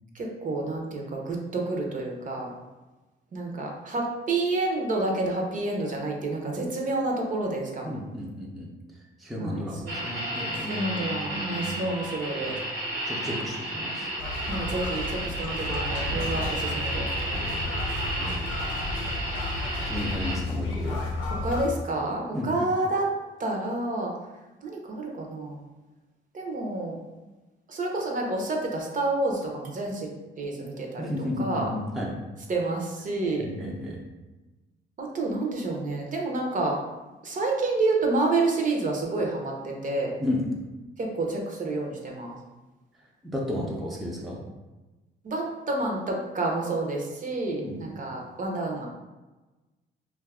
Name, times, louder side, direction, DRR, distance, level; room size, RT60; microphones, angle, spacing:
voice 1, 0.1-2.5 3.3-8.0 9.4-9.6 10.6-12.6 14.4-17.1 18.2-18.5 21.4-23.1 23.4-24.1 24.6-25.6 26.3-27.0 27.7-30.1 30.4-31.1 31.4-31.7 32.5-33.5 35.0-36.8 37.2-40.1 41.0-42.3 45.2-48.9, right 2 dB, 40° right, 0 dB, 0.6 m, -29 dB
voice 2, 7.8-8.7 9.2-11.9 12.4-12.6 13.1-14.1 16.1-16.3 17.3-17.7 18.2-18.6 19.8-21.2 22.3-22.5 31.0-32.1 33.4-34.0 40.2-40.4 43.2-44.4 47.6-47.8, left 1 dB, ahead, -3 dB, 0.5 m, -33 dB
sound 1, 9.9-20.4, right 1 dB, 80° right, 1.0 m, -32 dB
sound 2, 14.2-21.7, left 2 dB, 75° left, 0.6 m, -32 dB
2.5 x 2.3 x 3.5 m, 1.2 s
cardioid pair, 90°, 20 cm